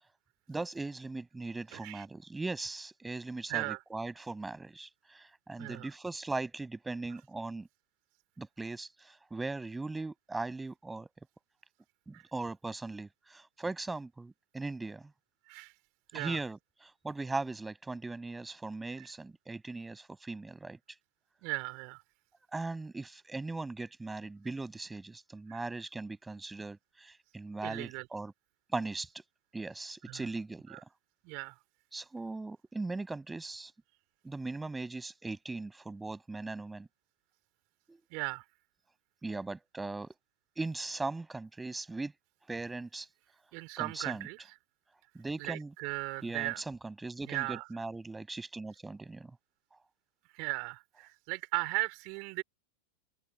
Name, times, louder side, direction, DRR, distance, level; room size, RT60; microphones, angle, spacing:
voice 1, 0.5-7.7 8.4-11.1 12.1-15.1 16.1-20.8 22.5-28.3 28.7-29.2 29.5-30.8 31.9-33.7 34.2-36.9 37.9-38.0 39.2-40.1 40.6-42.1 42.5-43.1 43.8-44.3 45.1-45.7 46.2-49.3, right 3 dB, 10° right, 6.5 m, -39 dB
voice 2, 1.7-2.0 3.5-3.8 5.6-5.9 12.1-12.2 15.5-15.7 16.1-16.4 21.4-22.0 25.5-25.6 27.6-28.1 30.1-30.2 30.7-30.8 31.2-31.5 38.1-38.4 43.5-44.4 45.4-46.6 47.3-47.6 50.3-52.4, right 33 dB, 45° right, 4.2 m, -37 dB
open air
figure-of-eight pair, 90°, 0 cm